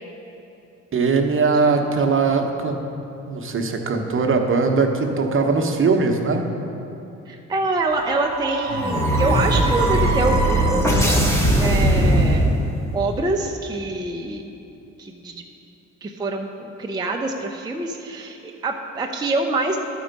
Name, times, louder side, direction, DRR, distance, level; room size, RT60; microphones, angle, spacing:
voice 1, 0.9-2.8 3.3-6.4, right 4 dB, 45° right, 3 dB, 0.9 m, -20 dB
voice 2, 7.3-11.1 11.6-12.5 12.9-14.5 15.0-15.4 16.0-19.8, right 2 dB, 15° right, 1 dB, 0.5 m, -25 dB
sound 1, 7.9-12.9, right 1 dB, 10° left, 1.1 m, -19 dB
12.0 x 4.5 x 5.2 m, 2.9 s
cardioid pair, 90°, 30 cm